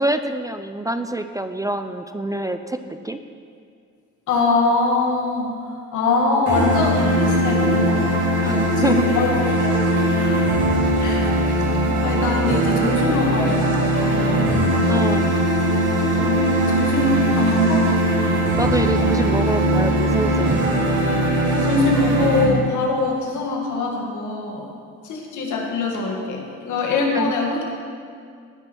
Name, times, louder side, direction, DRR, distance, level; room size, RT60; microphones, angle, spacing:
voice 1, 0.0-3.2 8.4-8.6 8.8-9.1 14.9-15.3 18.6-20.6 27.1-27.3, right 1 dB, 10° right, 8 dB, 0.4 m, -26 dB
voice 2, 4.3-5.5 5.9-8.2 8.4-9.7 10.2-10.4 11.0-11.3 12.0-14.6 16.1-17.9 21.6-24.7 25.0-27.6, left 3 dB, 75° left, 0 dB, 2.0 m, -23 dB
sound 1, 6.5-22.5, right 1 dB, 80° right, 2.8 m, -20 dB
17.5 x 5.9 x 4.5 m, 2.2 s
cardioid pair, 90°, 30 cm